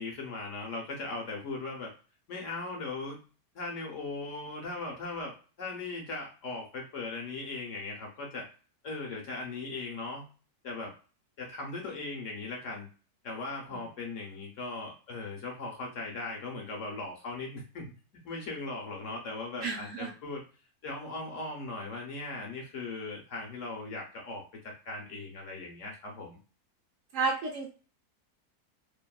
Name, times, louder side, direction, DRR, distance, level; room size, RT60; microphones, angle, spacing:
voice 1, 0.0-1.9 2.3-3.2 3.5-8.5 8.8-10.2 10.6-10.9 11.4-12.9 13.2-17.9 18.2-20.4 20.8-26.4, left 3 dB, 60° left, 0 dB, 0.9 m, -38 dB
voice 2, 19.6-20.1 27.1-27.7, right 4 dB, 65° right, 0 dB, 0.8 m, -31 dB
2.7 x 2.2 x 2.2 m, 0.36 s
omnidirectional pair, 1.7 m